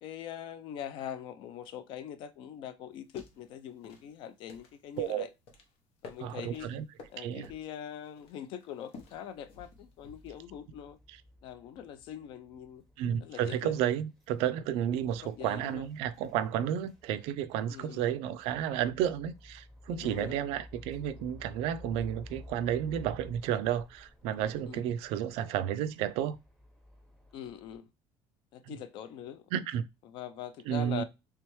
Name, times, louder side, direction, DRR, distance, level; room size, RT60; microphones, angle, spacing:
voice 1, 0.0-5.3 6.0-6.7 7.1-11.0 11.4-12.8 13.2-13.8 15.2-15.9 17.7-18.0 20.0-20.4 24.7-24.8 27.3-27.9 28.5-29.4 30.0-31.0, left 9 dB, 55° left, 0.4 m, -43 dB
sound 1, 2.9-10.4, left 3 dB, 90° left, 1.0 m, -53 dB
voice 2, 6.2-6.8 7.2-7.5 13.0-26.4 28.7-28.8 29.5-29.9 30.7-31.0, right 10 dB, 85° right, 0.4 m, -32 dB
sound 2, 9.0-27.7, left 1 dB, 5° left, 0.7 m, -54 dB
3.3 x 3.2 x 3.1 m
cardioid pair, 175°, 10 cm